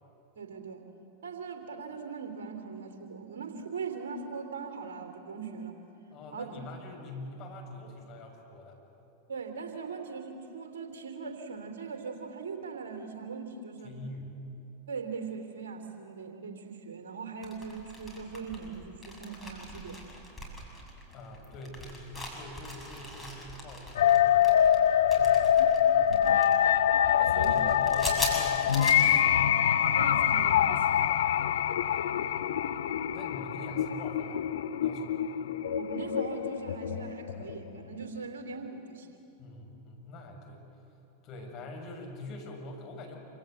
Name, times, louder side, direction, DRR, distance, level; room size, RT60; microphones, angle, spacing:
voice 1, 0.3-0.8 1.2-5.7 6.3-6.6 9.3-13.9 14.9-20.0 26.1-26.3 27.3-27.5 30.0-31.1 35.7-39.2, right 5 dB, 60° right, 6 dB, 3.1 m, -40 dB
voice 2, 6.1-8.8 13.8-14.3 21.1-24.8 25.1-25.4 25.9-26.5 27.2-29.4 31.9-32.4 33.0-35.2 39.4-40.6 41.2-43.2, left 1 dB, 40° left, 1 dB, 6.9 m, -45 dB
sound 1, 17.4-28.9, left 1 dB, 5° left, 7.5 m, -41 dB
sound 2, 24.0-38.0, left 10 dB, 60° left, 0.8 m, -25 dB
27.5 x 27.0 x 8.0 m, 2.7 s
figure-of-eight pair, 90°, 0 cm